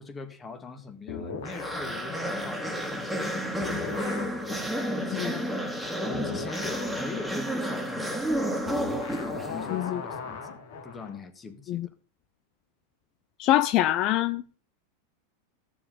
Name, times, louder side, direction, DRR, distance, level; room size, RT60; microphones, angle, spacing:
voice 1, 0.0-5.5 6.0-8.7 9.2-10.6 10.8-11.9, left 4 dB, 20° left, 1.7 m, -42 dB
sound 1, 1.1-3.3 3.6-11.2, left 5 dB, 75° left, 3.4 m, -40 dB
sound 2, 1.4-9.9, equal, ahead, 2.2 m, -31 dB
voice 2, 13.4-14.4, left 14 dB, 45° left, 0.5 m, -24 dB
14.5 x 6.9 x 5.1 m
supercardioid pair, 125°, 0 cm